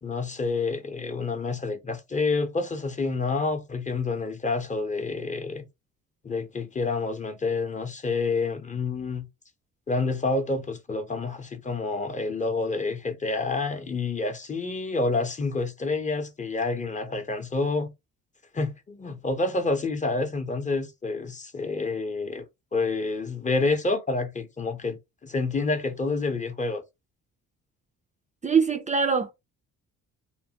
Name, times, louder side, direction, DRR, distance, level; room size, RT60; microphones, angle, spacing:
voice 1, 0.0-5.7 6.2-9.3 9.9-17.9 18.5-22.4 22.7-26.8, left 3 dB, 25° left, 0.7 m, -28 dB
voice 2, 28.4-29.3, right 5 dB, 25° right, 0.4 m, -23 dB
3.2 x 2.1 x 2.8 m
cardioid pair, 90°, 30 cm